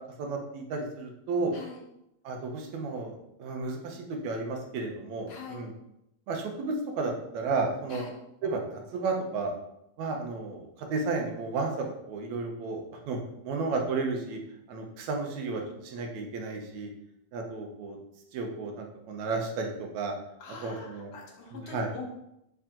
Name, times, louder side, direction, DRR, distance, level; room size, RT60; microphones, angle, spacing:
voice 1, 0.2-1.5 2.2-5.7 6.3-8.0 8.4-9.5 10.0-14.4 14.7-16.9 17.3-18.0 18.3-20.1 20.6-21.1 21.5-21.9, right 3 dB, 75° right, 2 dB, 2.3 m, -33 dB
voice 2, 5.3-5.7 7.9-8.1 20.4-22.1, left 4 dB, 65° left, -1 dB, 2.3 m, -43 dB
8.8 x 4.0 x 3.8 m, 0.83 s
omnidirectional pair, 3.3 m